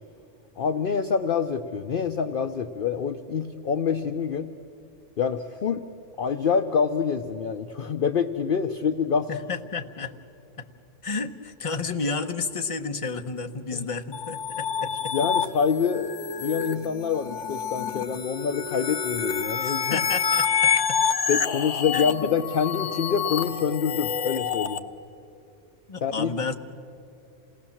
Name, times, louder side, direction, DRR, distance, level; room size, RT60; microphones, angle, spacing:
voice 1, 0.6-4.5 5.2-5.8 6.2-9.3 13.7-13.9 15.1-20.0 21.3-24.8 26.0-26.3, left 6 dB, 55° left, 8 dB, 0.8 m, -26 dB
voice 2, 9.3-10.1 10.6-10.7 11.0-15.1 19.6-20.7 21.9-22.3 25.9-26.5, left 4 dB, 30° left, 6 dB, 0.9 m, -31 dB
sound 1, 14.1-24.8, left 7 dB, 75° left, 1.2 m, -28 dB
27.5 x 18.5 x 7.2 m, 2.6 s
omnidirectional pair, 1.3 m